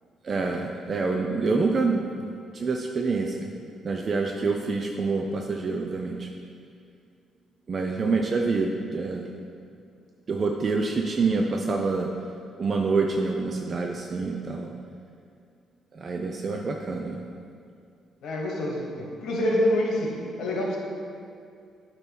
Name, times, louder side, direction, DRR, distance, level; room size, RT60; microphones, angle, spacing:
voice 1, 0.2-2.0 2.5-3.5 3.8-6.3 7.7-9.2 10.3-12.1 12.6-14.7 15.9-17.2, right 4 dB, 45° right, 1 dB, 0.5 m, -26 dB
voice 2, 18.2-20.8, left 1 dB, 75° left, -1 dB, 1.4 m, -26 dB
8.7 x 3.0 x 6.0 m, 2.3 s
cardioid pair, 90°, 0 cm